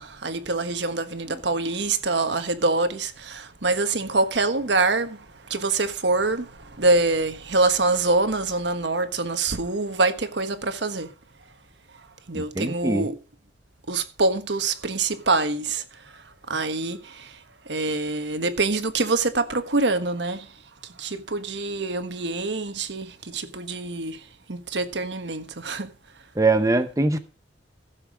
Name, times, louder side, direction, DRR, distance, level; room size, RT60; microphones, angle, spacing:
voice 1, 0.0-11.1 12.3-13.2 13.9-15.8 16.5-17.4 17.7-20.5 21.0-24.2 24.5-25.9, right 3 dB, 65° right, 1.4 m, -25 dB
voice 2, 12.3-13.1 26.4-27.2, right 2 dB, 20° right, 0.7 m, -22 dB
15.5 x 7.2 x 4.8 m
head